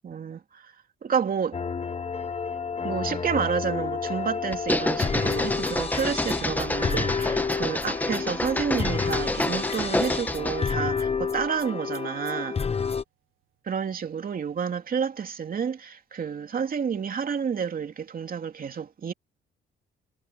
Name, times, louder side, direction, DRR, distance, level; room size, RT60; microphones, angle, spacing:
voice 1, 0.0-0.7 1.0-1.6 2.8-12.6 13.7-19.1, right 7 dB, 45° right, 2.7 m, -30 dB
sound 1, 1.5-13.0, left 5 dB, 30° left, 1.2 m, -30 dB
sound 2, 4.5-10.7, left 1 dB, 10° left, 1.2 m, -28 dB
sound 3, 6.9-12.4 13.4-13.5 14.3-14.6, right 14 dB, 90° right, 1.5 m, -48 dB
cardioid pair, 90°, 20 cm